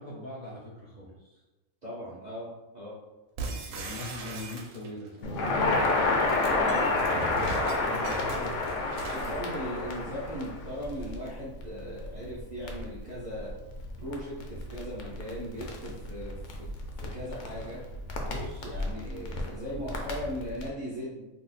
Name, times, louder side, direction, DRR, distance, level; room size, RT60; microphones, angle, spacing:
voice 1, 0.0-1.4 3.7-7.2 7.7-8.8 18.2-18.7 19.8-19.9, left 1 dB, 50° left, -5 dB, 0.6 m, -42 dB
voice 2, 1.8-2.9 9.1-13.5 14.0-16.7 17.0-17.8 18.6-21.3, equal, 45° right, -7 dB, 0.6 m, -38 dB
sound 1, 3.4-5.1 6.1-9.4, right 3 dB, 70° right, 0.9 m, -39 dB
Crackle, 5.2-20.7, left 2 dB, 70° left, 0.9 m, -31 dB
2.7 x 2.3 x 4.0 m, 1.1 s
omnidirectional pair, 1.4 m